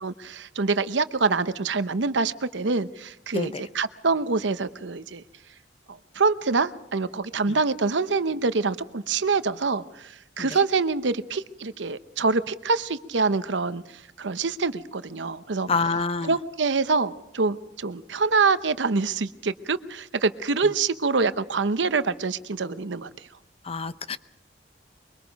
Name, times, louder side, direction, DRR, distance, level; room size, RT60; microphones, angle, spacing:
voice 1, 0.0-5.2 5.9-15.7 16.3-23.1, right 4 dB, 80° right, 13 dB, 0.8 m, -25 dB
voice 2, 15.7-16.4 23.6-24.2, left 4 dB, 35° left, 13 dB, 0.8 m, -27 dB
24.0 x 23.5 x 5.2 m, 0.80 s
head